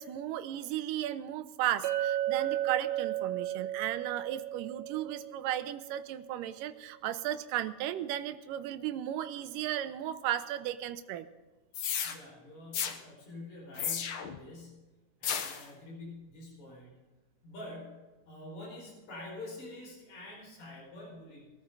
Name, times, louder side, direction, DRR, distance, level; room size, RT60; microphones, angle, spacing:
voice 1, 0.0-11.3, right 12 dB, 85° right, 10 dB, 2.3 m, -35 dB
Chink clink, 1.8-6.1, right 13 dB, 60° right, 2.2 m, -34 dB
sound 1, 11.7-12.1 12.7-13.0 13.8-14.4 15.2-15.6, left 8 dB, 75° left, 1.2 m, -33 dB
voice 2, 12.0-14.9 15.2-16.9 17.4-21.5, left 2 dB, 55° left, -3 dB, 6.4 m, -47 dB
21.5 x 13.5 x 3.9 m, 1.2 s
omnidirectional pair, 3.8 m